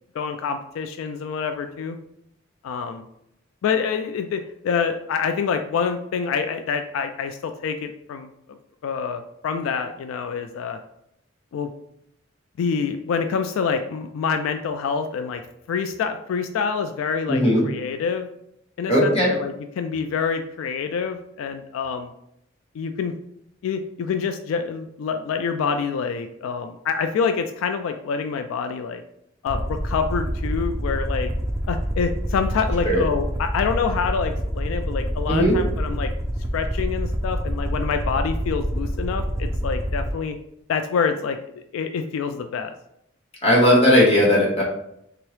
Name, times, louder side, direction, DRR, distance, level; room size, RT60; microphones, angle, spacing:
voice 1, 0.1-2.0 2.6-3.0 3.6-8.3 8.8-10.8 11.5-11.7 12.6-15.4 15.7-18.3 18.8-22.1 22.7-23.1 23.6-29.0 29.4-31.3 31.7-36.1 36.5-40.4 40.7-41.4 41.7-42.7, left 6 dB, 85° left, 7 dB, 0.3 m, -26 dB
voice 2, 17.3-17.6 18.9-19.3 32.8-33.0 35.3-35.6 43.4-44.6, equal, 30° left, -4 dB, 1.2 m, -17 dB
Aircraft, 29.5-40.1, equal, 15° right, 0.4 m, -27 dB
3.5 x 2.9 x 3.2 m, 0.76 s
head